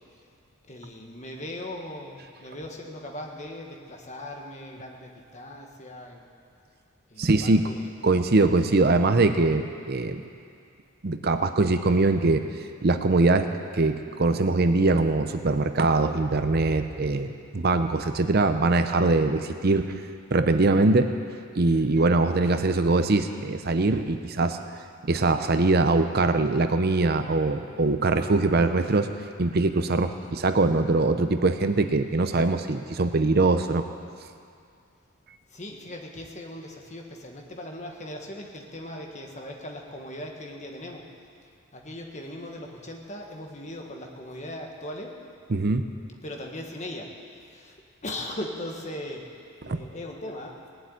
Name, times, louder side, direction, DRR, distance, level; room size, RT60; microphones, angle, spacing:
voice 1, 0.7-6.2 7.1-7.9 35.5-41.0 41.7-45.1 46.2-47.1 47.6-47.7 48.0-49.3 49.6-50.5, left 1 dB, 35° left, 1 dB, 1.6 m, -39 dB
voice 2, 7.2-7.7 8.0-10.2 11.0-12.4 12.8-13.5 13.7-19.9 20.3-21.1 21.6-24.6 25.0-29.1 29.4-33.8 45.5-45.9 49.6-49.8, right 3 dB, 45° right, 8 dB, 0.6 m, -22 dB
18.5 x 7.9 x 9.5 m, 2.4 s
head